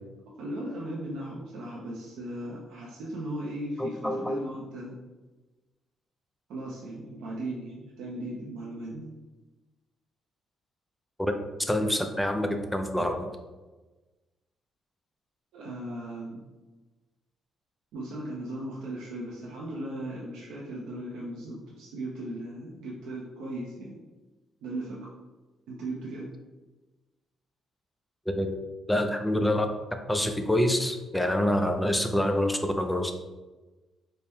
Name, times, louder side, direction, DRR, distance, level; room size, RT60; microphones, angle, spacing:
voice 1, 0.4-5.0 6.5-9.1 15.5-16.4 17.9-24.0 24.6-25.0 25.7-26.3, right 1 dB, 85° right, -5 dB, 0.6 m, -37 dB
voice 2, 3.8-4.5 11.2-11.3 11.7-13.3 28.4-28.6 28.9-29.7 30.1-33.1, left 1 dB, 5° left, 5 dB, 0.4 m, -26 dB
4.3 x 2.1 x 3.5 m, 1.2 s
cardioid pair, 90°, 0 cm